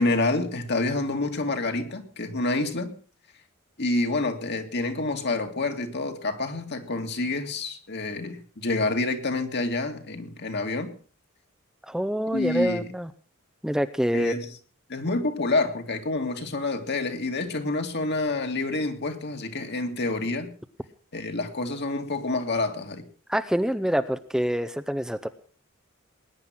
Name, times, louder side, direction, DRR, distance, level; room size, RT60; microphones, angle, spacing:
voice 1, 0.0-3.0 3.8-10.9 12.3-12.9 14.1-14.5 14.9-20.5 21.1-23.0, left 2 dB, 55° left, 2.3 m, -28 dB
voice 2, 11.8-13.1 13.6-14.3 23.3-25.3, equal, 5° right, 0.7 m, -26 dB
20.5 x 10.0 x 6.1 m
head